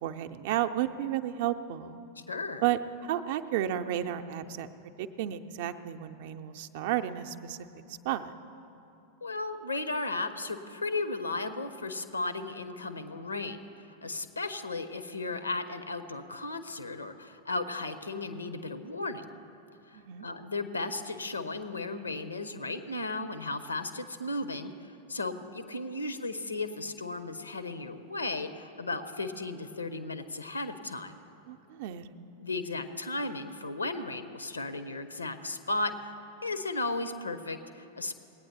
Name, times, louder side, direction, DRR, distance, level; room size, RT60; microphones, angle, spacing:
voice 1, 0.0-2.0 2.6-2.8 3.1-4.7 5.0-7.7 8.0-8.3 19.9-20.3 31.5-32.0, right 12 dB, 50° right, 8 dB, 0.5 m, -32 dB
voice 2, 2.3-2.7 9.2-19.3 19.9-31.1 32.4-35.9 36.4-38.1, left 2 dB, 80° left, 11 dB, 0.7 m, -35 dB
19.5 x 9.0 x 4.1 m, 2.9 s
figure-of-eight pair, 90°, 0 cm